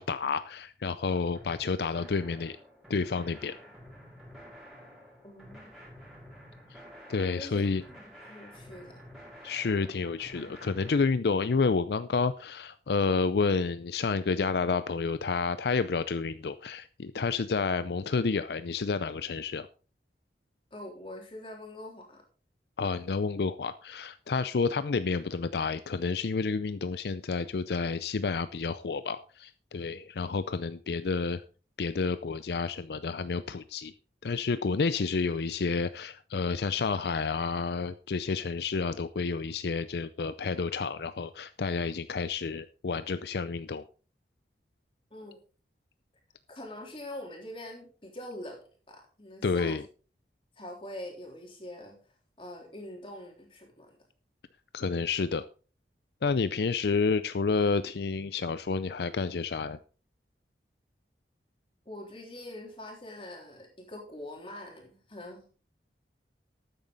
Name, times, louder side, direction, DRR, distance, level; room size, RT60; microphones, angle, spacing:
voice 1, 0.0-2.6 2.9-3.5 6.7-6.8 7.1-7.8 9.4-19.7 22.8-31.4 31.8-33.9 34.2-43.8 49.4-49.8 54.7-55.5 56.2-59.8, left 4 dB, 70° left, 13 dB, 0.5 m, -30 dB
sound 1, 1.3-11.0, equal, ahead, 5.1 m, -50 dB
voice 2, 5.2-5.6 7.3-9.0 20.7-22.2 45.1-45.4 46.5-48.6 48.9-49.8 50.6-52.0 52.4-54.0 56.6-56.7 61.9-65.5, left 1 dB, 30° left, 1 dB, 3.5 m, -44 dB
12.5 x 9.2 x 3.9 m, 0.38 s
head